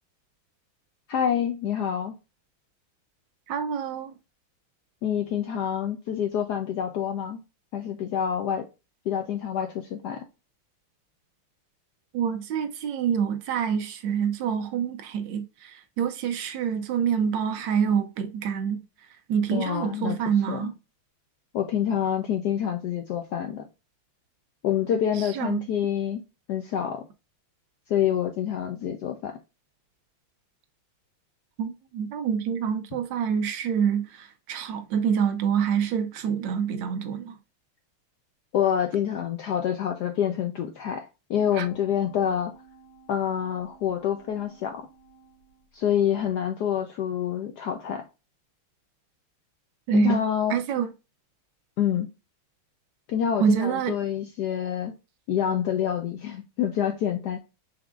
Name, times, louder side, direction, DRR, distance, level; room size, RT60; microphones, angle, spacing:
voice 1, 1.1-2.1 5.0-7.4 7.7-8.7 9.1-10.3 19.5-20.2 20.5-20.7 21.5-23.6 24.6-26.2 26.5-27.0 27.9-29.4 38.5-42.5 43.1-44.9 45.7-48.1 49.9-50.6 51.8-52.1 53.1-54.9 55.3-57.4, left 9 dB, 85° left, 0.9 m, -27 dB
voice 2, 3.5-4.1 12.1-18.8 19.3-20.8 25.2-25.6 31.6-37.4 41.6-41.7 49.9-50.2 50.5-50.9 53.4-53.9, right 7 dB, 75° right, 1.1 m, -26 dB
sound 1, 41.3-45.9 46.3-46.4, right 2 dB, 60° left, 2.0 m, -53 dB
4.8 x 3.5 x 2.3 m
omnidirectional pair, 2.4 m